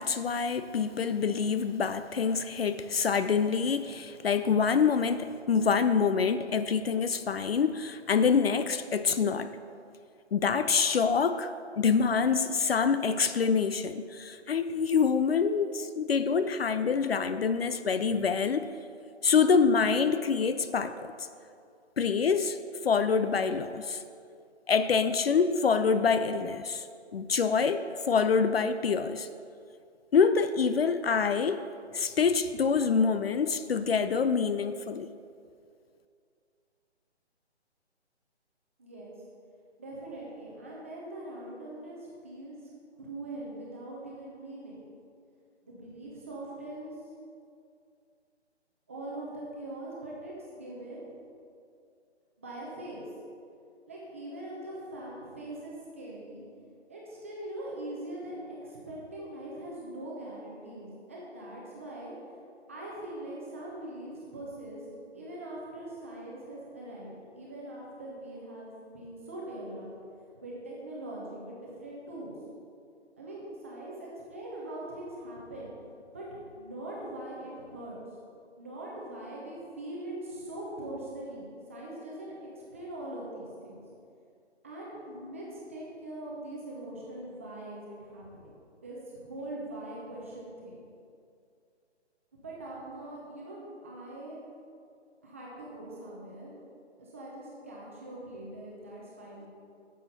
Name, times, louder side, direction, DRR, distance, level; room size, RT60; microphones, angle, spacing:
voice 1, 0.0-9.5 10.3-18.7 19.2-21.3 22.0-24.0 24.7-26.9 27.1-29.3 30.1-31.7 31.9-35.1, left 5 dB, 60° left, 11 dB, 0.5 m, -26 dB
voice 2, 38.8-39.1 39.8-42.6 43.0-44.8 45.6-46.9 48.9-51.0 52.4-53.0 53.9-56.4 56.9-62.1 62.7-64.8 65.1-69.9 70.4-72.3 73.2-75.7 76.1-78.0 78.6-83.8 84.6-88.5 88.8-90.8 92.3-93.6 93.8-94.4 95.2-96.5 97.0-99.5, right 1 dB, 10° right, -5 dB, 0.7 m, -42 dB
10.0 x 7.1 x 4.0 m, 2.4 s
hypercardioid pair, 165°, 34 cm